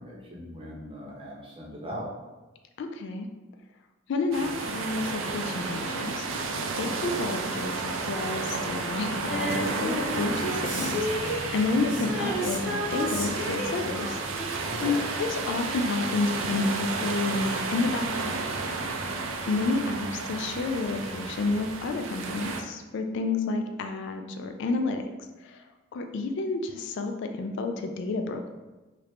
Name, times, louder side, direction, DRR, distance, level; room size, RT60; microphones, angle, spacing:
voice 1, 0.0-2.1 14.7-15.1 18.9-19.2, equal, 30° right, -4 dB, 0.8 m, -40 dB
voice 2, 2.8-3.3 4.1-14.2 14.5-14.6 14.8-18.4 19.5-25.0 25.4-25.6 25.9-28.5, left 3 dB, 65° left, 6 dB, 0.3 m, -30 dB
sound 1, 4.3-22.6, right 3 dB, 80° right, 0.4 m, -32 dB
Female singing, 9.2-15.9 16.2-16.3, equal, ahead, 1.4 m, -34 dB
3.2 x 2.5 x 3.1 m, 1.1 s
head